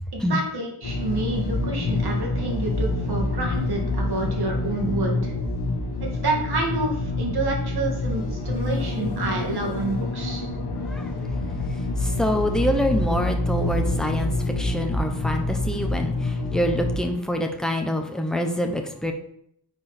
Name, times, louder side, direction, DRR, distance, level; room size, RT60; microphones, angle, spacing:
voice 1, 0.1-5.3 6.0-10.5, right 2 dB, 65° right, 0 dB, 2.2 m, -28 dB
sound 1, 0.8-17.0, left 2 dB, 70° left, 1.3 m, -27 dB
voice 2, 12.2-14.3 14.6-16.1 16.5-19.1, left 1 dB, ahead, 3 dB, 0.9 m, -25 dB
9.4 x 5.0 x 4.3 m, 0.71 s
wide cardioid pair, 150°, 41 cm